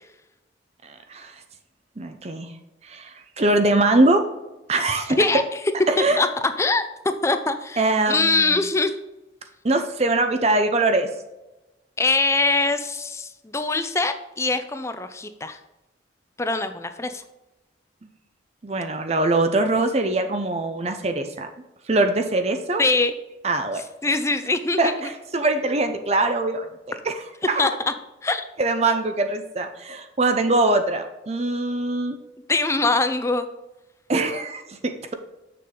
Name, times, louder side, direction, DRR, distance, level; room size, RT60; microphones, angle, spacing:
voice 1, 0.8-1.3 2.0-2.5 2.8-4.2 4.7-5.2 5.9-6.2 7.8-8.6 9.6-11.1 18.6-21.5 21.9-22.8 23.4-23.8 24.8-27.6 28.6-32.2 34.1-35.1, right 2 dB, 35° right, 7 dB, 0.6 m, -22 dB
voice 2, 7.2-7.8 8.1-8.9 12.0-15.6 16.4-17.2 22.8-23.1 24.0-24.9 27.6-27.9 28.2-28.5 32.5-33.5, left 3 dB, 15° left, 9 dB, 0.5 m, -22 dB
6.8 x 6.7 x 3.8 m, 0.99 s
head